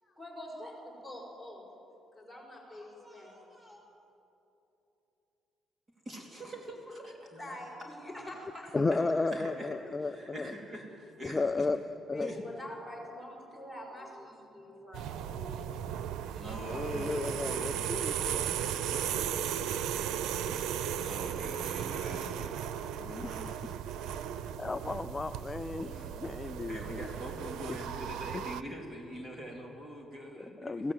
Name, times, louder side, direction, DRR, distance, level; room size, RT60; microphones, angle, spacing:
voice 1, 0.0-1.7 2.1-3.8 7.4-8.7 12.0-15.8, left 1 dB, ahead, -2 dB, 5.1 m, -45 dB
voice 2, 6.0-7.6 8.9-9.7 10.0-11.7 12.2-12.4 16.3-18.0 20.2-20.7 21.0-22.7 26.7-30.9, equal, 25° right, 0 dB, 3.1 m, -43 dB
voice 3, 8.7-10.5 11.2-11.8 12.1-12.3 16.7-18.5 18.9-19.0 23.1-23.5 24.6-27.1 28.3-28.4 30.4-30.9, left 3 dB, 15° left, 9 dB, 0.4 m, -34 dB
sound 1, 14.9-28.6, right 9 dB, 90° right, 0.6 m, -36 dB
22.5 x 16.0 x 8.0 m, 3.0 s
cardioid pair, 160°, 0 cm